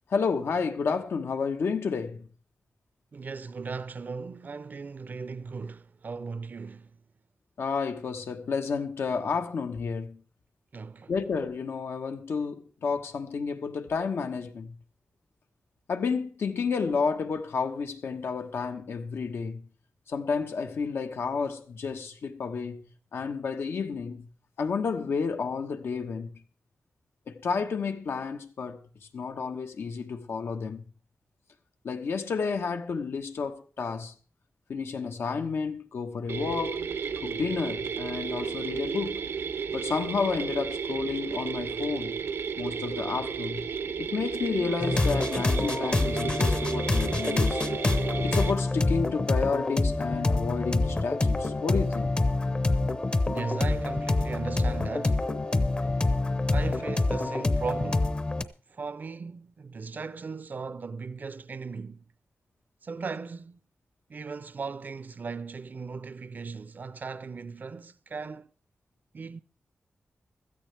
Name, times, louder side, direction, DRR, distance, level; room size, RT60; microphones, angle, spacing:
voice 1, 0.1-2.3 7.6-10.2 11.1-14.7 15.9-19.6 20.1-22.9 23.1-24.3 24.6-26.3 27.3-28.8 29.1-30.8 31.8-34.1 34.7-36.8 37.2-39.2 39.7-42.2 42.6-43.6 44.0-47.6 48.2-52.2, left 5 dB, 85° left, 1.2 m, -31 dB
voice 2, 3.1-6.9 10.7-11.1 53.3-55.4 56.5-58.1 58.7-62.0 62.8-63.6 64.1-68.5 69.1-69.4, right 4 dB, 45° right, 0.5 m, -37 dB
sound 1, 36.3-48.5, right 6 dB, 90° right, 0.9 m, -33 dB
sound 2, 44.8-58.4, left 2 dB, 25° left, 0.7 m, -26 dB
16.0 x 13.5 x 3.4 m
wide cardioid pair, 145°, 4 cm